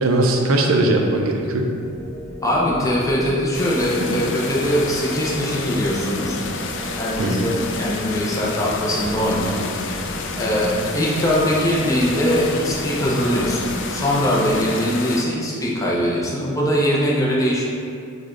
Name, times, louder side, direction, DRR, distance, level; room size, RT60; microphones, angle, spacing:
voice 1, 0.0-1.7 4.1-4.2 7.2-7.5, right 2 dB, 90° right, 2 dB, 0.5 m, -19 dB
sound 1, 1.8-14.7, equal, 35° right, 0.7 m, -34 dB
voice 2, 2.4-6.4 7.0-10.1 10.4-17.7, equal, 15° left, -5 dB, 0.6 m, -21 dB
sound 2, 3.5-15.2, left 4 dB, 60° left, 0.4 m, -30 dB
4.8 x 2.3 x 3.8 m, 2.4 s
head